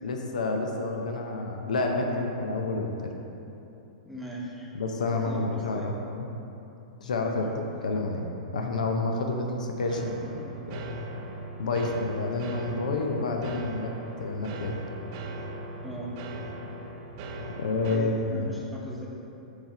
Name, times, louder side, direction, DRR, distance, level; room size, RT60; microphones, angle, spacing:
voice 1, 0.0-3.1 4.8-6.3 7.0-7.5 7.8-8.3 8.5-10.9 11.6-13.9 14.2-14.7 17.6-18.5, left 3 dB, 70° left, 2 dB, 0.6 m, -29 dB
voice 2, 4.0-4.7 5.1-5.9 7.4-7.5 15.8-16.1 17.9-19.1, equal, ahead, -5 dB, 1.0 m, -39 dB
sound 1, 9.9-18.0, right 1 dB, 45° right, 0.6 m, -39 dB
7.0 x 3.3 x 4.2 m, 2.9 s
figure-of-eight pair, 105°, 4 cm